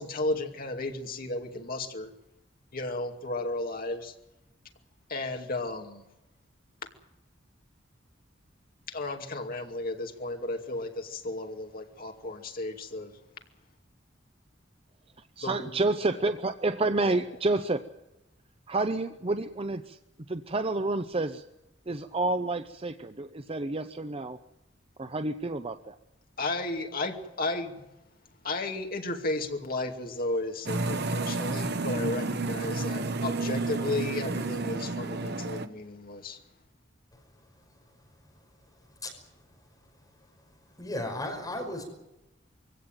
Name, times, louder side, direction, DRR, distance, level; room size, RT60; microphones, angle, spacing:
voice 1, 0.0-2.1 2.7-4.1 5.1-6.0 8.9-13.2 15.4-15.8 16.2-16.3 16.9-17.2 26.4-27.8 28.4-36.4, left 2 dB, 50° left, 3 dB, 2.5 m, -34 dB
voice 2, 15.4-17.9 18.7-20.0 20.3-21.4 21.9-24.4 25.0-26.0, right 2 dB, 30° right, 9 dB, 0.7 m, -29 dB
sound 1, 30.7-35.7, right 3 dB, 60° right, 1.1 m, -31 dB
voice 3, 40.8-41.8, left 1 dB, 20° left, 2 dB, 5.3 m, -34 dB
23.0 x 17.0 x 9.1 m, 0.93 s
head